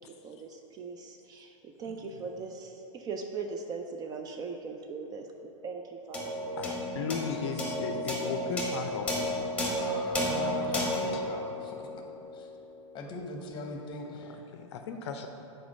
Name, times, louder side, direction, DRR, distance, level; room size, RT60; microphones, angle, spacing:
voice 1, 0.0-5.2 5.6-6.7 7.4-7.5 7.9-8.1, right 4 dB, 25° right, 4 dB, 0.3 m, -40 dB
sound 1, 6.1-12.7, equal, 10° left, 1.2 m, -32 dB
voice 2, 6.5-9.4 11.1-11.2 14.5-15.3, left 6 dB, 55° left, 6 dB, 0.5 m, -36 dB
voice 3, 9.8-12.0 12.3-12.5 12.9-14.4, left 2 dB, 25° left, 2 dB, 0.9 m, -41 dB
4.9 x 4.4 x 5.4 m, 2.9 s
hypercardioid pair, 110°, 17 cm